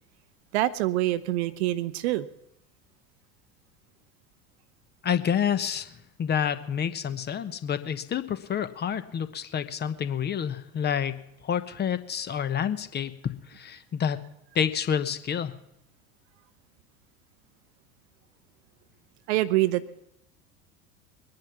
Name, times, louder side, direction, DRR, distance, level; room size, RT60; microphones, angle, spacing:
voice 1, 0.5-2.3 19.3-19.8, right 16 dB, 50° right, 16 dB, 0.9 m, -25 dB
voice 2, 5.0-5.9 6.2-11.2 11.4-13.1 13.5-14.2 14.5-15.5, left 8 dB, 25° left, 12 dB, 1.1 m, -28 dB
22.5 x 10.5 x 6.0 m, 0.80 s
figure-of-eight pair, 75°, 41 cm